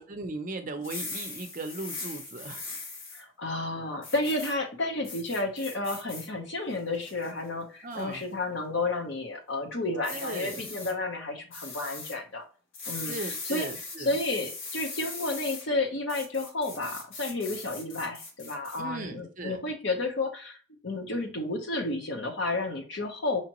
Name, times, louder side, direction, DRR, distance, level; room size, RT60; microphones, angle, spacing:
voice 1, 0.0-2.6 7.8-8.2 10.1-10.7 13.1-14.1 18.8-19.6, right 3 dB, 40° right, 6 dB, 0.6 m, -37 dB
sound 1, 0.8-3.2 4.0-4.5 5.0-6.3 6.7-7.3 7.9-8.2 10.0-10.9 11.5-12.1 12.7-15.6 16.1-18.8, left 3 dB, 80° left, 1.3 m, -40 dB
voice 2, 3.1-12.4 12.9-13.7 14.0-23.4, left 2 dB, 60° left, 3 dB, 1.0 m, -31 dB
4.9 x 2.9 x 3.0 m, 0.38 s
head